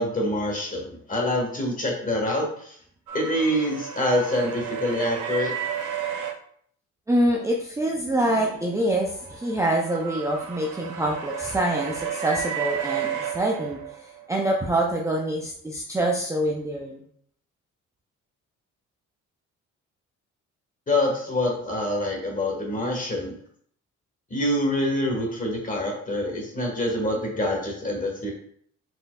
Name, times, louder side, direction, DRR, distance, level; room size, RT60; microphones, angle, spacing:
voice 1, 0.0-2.8 3.1-5.5 20.9-23.3 24.3-28.3, left 1 dB, 25° left, 0 dB, 1.4 m, -26 dB
sound 1, 3.1-6.3 8.7-14.2, right 8 dB, 75° right, 0.7 m, -32 dB
voice 2, 7.1-13.8 14.3-17.0, right 1 dB, 10° right, -1 dB, 0.5 m, -25 dB
4.3 x 3.8 x 2.3 m, 0.62 s
cardioid pair, 90°, 30 cm